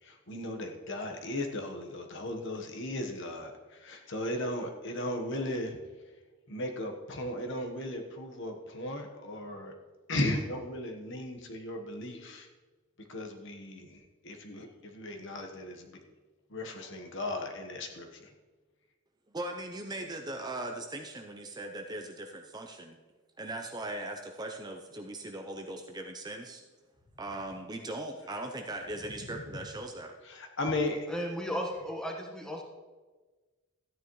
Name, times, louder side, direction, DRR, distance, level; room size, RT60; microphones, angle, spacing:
voice 1, 0.0-5.8 6.5-9.7 10.1-12.5 13.0-16.0 16.5-18.3 29.2-29.6 30.2-31.2, left 1 dB, 55° left, 3 dB, 1.2 m, -36 dB
voice 2, 19.3-23.0 23.4-26.6 27.2-30.1, right 1 dB, 20° right, 4 dB, 0.6 m, -39 dB
voice 3, 31.1-32.6, equal, 5° left, 0 dB, 1.3 m, -35 dB
14.0 x 9.7 x 3.1 m, 1.3 s
head